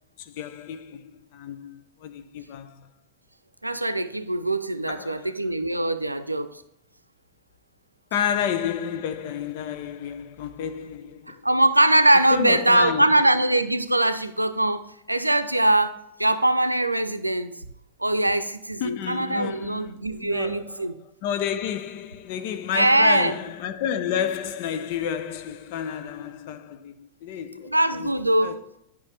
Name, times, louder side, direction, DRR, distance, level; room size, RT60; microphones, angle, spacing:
voice 1, 0.2-1.0 1.3-2.8 4.9-5.3 8.1-11.4 12.3-13.1 18.8-19.9 20.2-28.1 28.4-28.5, left 9 dB, 50° left, 0.8 m, -31 dB
voice 2, 3.6-6.6 11.3-17.6 18.0-20.9 22.7-23.4 27.7-28.6, right 1 dB, 85° right, 0.5 m, -22 dB
11.0 x 5.4 x 3.4 m
figure-of-eight pair, 90°, 0 cm